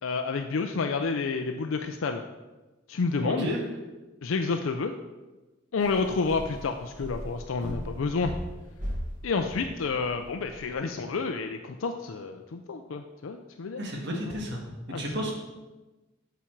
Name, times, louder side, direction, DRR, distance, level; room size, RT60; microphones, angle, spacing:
voice 1, 0.0-2.2 2.9-3.5 4.2-4.9 5.7-8.3 9.2-13.8 14.9-15.0, left 4 dB, 75° left, 5 dB, 0.5 m, -29 dB
voice 2, 3.2-3.6 13.8-14.6 14.9-15.3, equal, 55° right, 0 dB, 1.7 m, -32 dB
sound 1, 5.8-10.7, equal, 40° right, 1.5 m, -39 dB
8.6 x 5.9 x 4.5 m, 1.2 s
head